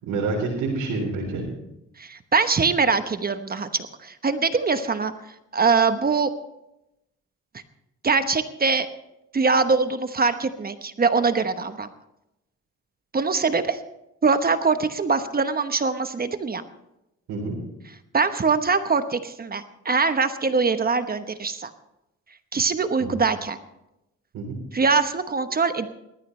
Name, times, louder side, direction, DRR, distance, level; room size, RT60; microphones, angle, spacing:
voice 1, 0.0-1.5 17.3-17.6 23.0-23.1 24.3-24.6, right 3 dB, 85° right, -4 dB, 3.9 m, -27 dB
voice 2, 2.0-5.1 5.5-6.3 8.0-8.9 9.3-11.9 13.1-13.8 14.2-16.6 18.1-21.7 22.5-23.6 24.7-25.9, right 4 dB, 30° right, 9 dB, 1.1 m, -23 dB
19.5 x 14.0 x 3.3 m, 0.87 s
cardioid pair, 90°, 30 cm